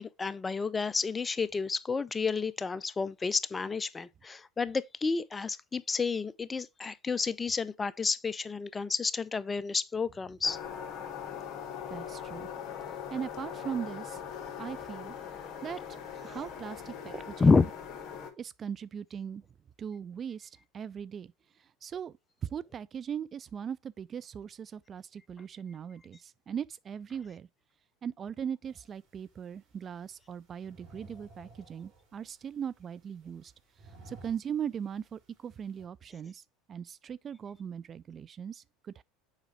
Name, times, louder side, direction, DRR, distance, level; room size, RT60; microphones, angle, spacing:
voice 1, 0.0-10.6 17.4-17.6, left 4 dB, 20° left, 0.5 m, -30 dB
sound 1, 10.4-18.3, left 8 dB, 45° left, 1.7 m, -41 dB
voice 2, 11.9-12.5 13.1-14.2 14.6-15.2 15.6-16.0 16.2-17.7 18.4-19.4 19.8-21.3 21.6-22.1 22.4-27.5 28.0-33.5 34.1-39.0, right 8 dB, 35° right, 0.4 m, -39 dB
Whooshes (mouth) Slow, 28.6-35.9, right 2 dB, 50° right, 4.0 m, -57 dB
7.3 x 5.1 x 3.2 m
hypercardioid pair, 80°, 0 cm